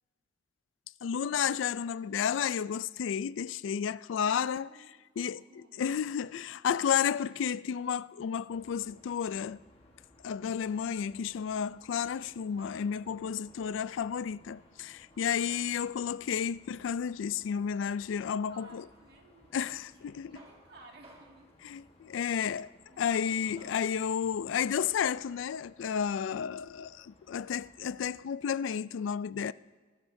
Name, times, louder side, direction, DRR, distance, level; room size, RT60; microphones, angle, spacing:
voice 1, 1.0-4.7 5.2-5.4 5.8-9.6 10.2-18.8 19.5-20.3 21.6-22.7 23.0-29.5, left 7 dB, 85° left, 0.3 m, -32 dB
voice 2, 4.1-5.9 18.5-19.9 20.2-22.1 22.3-22.5 22.9-23.3 26.1-26.5, right 2 dB, 60° right, 2.1 m, -58 dB
sound 1, 8.5-28.2, left 1 dB, 35° left, 1.3 m, -62 dB
Male speech man speaking, 11.8-24.0, right 2 dB, 30° right, 2.0 m, -61 dB
22.0 x 12.5 x 2.7 m
head